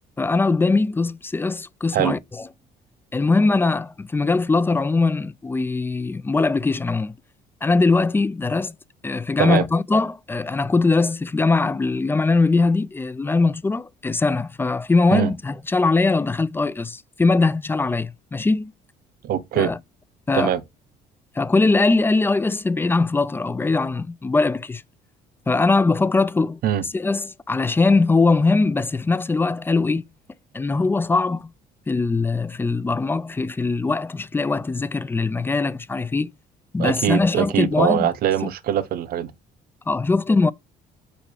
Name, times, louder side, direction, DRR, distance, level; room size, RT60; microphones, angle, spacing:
voice 1, 0.2-2.4 3.1-7.2 7.6-8.7 9.0-18.7 19.6-19.8 20.3-20.5 21.4-24.8 25.5-26.6 26.9-30.0 30.5-31.5 31.9-36.3 36.7-38.1 39.9-40.5, left 3 dB, 15° left, 0.3 m, -21 dB
voice 2, 19.2-19.7 20.3-20.6 26.6-26.8 36.8-39.3, right 10 dB, 60° right, 0.8 m, -22 dB
5.1 x 4.4 x 4.7 m
cardioid pair, 110°, 17 cm